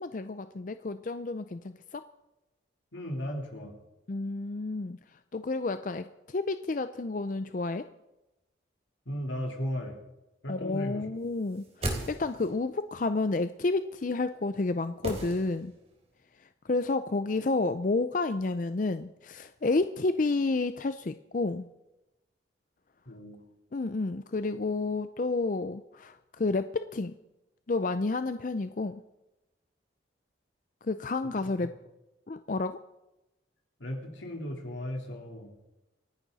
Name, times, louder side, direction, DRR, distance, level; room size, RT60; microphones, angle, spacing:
voice 1, 0.0-2.0 4.1-7.8 10.5-15.7 16.4-21.7 23.7-27.1 27.7-29.0 30.8-31.7 32.3-32.8, left 3 dB, 45° left, 11 dB, 0.5 m, -30 dB
voice 2, 2.9-3.7 9.1-10.0 10.4-11.1 23.1-23.4 33.8-35.5, equal, 85° left, 1 dB, 3.6 m, -36 dB
sound 1, 11.4-12.6 15.0-15.9 16.2-16.3, right 1 dB, 35° right, 3.2 m, -36 dB
27.5 x 11.0 x 4.1 m, 0.98 s
head